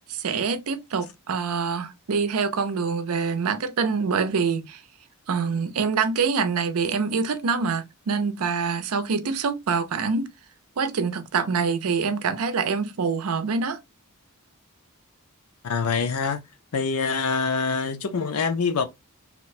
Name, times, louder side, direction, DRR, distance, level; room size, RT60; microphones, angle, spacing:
voice 1, 0.1-4.8 5.3-10.3 10.8-13.8, right 5 dB, 75° right, 0.5 m, -25 dB
voice 2, 15.6-16.4 16.7-18.8, left 5 dB, 85° left, 0.5 m, -25 dB
2.9 x 2.1 x 4.1 m
head